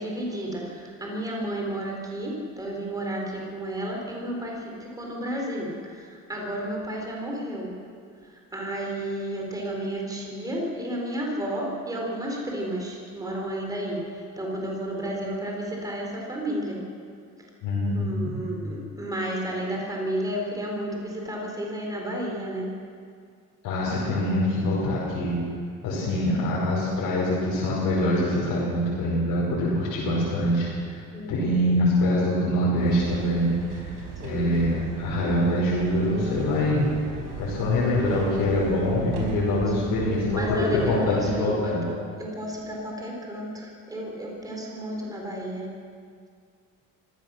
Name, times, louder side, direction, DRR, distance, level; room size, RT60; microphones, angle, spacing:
voice 1, 0.0-7.7 8.2-16.8 17.9-22.7 25.9-26.0 31.1-31.6 34.2-34.5 38.0-38.3 39.3-39.7 40.3-45.7, right 1 dB, 10° right, -1 dB, 4.0 m, -32 dB
voice 2, 17.6-18.4 23.6-25.4 25.8-30.7 31.3-36.9 37.4-41.9, left 1 dB, 85° left, -6 dB, 5.5 m, -24 dB
sound 1, 32.7-41.2, right 5 dB, 85° right, 4.9 m, -38 dB
24.0 x 17.0 x 6.4 m, 2.2 s
cardioid pair, 165°, 32 cm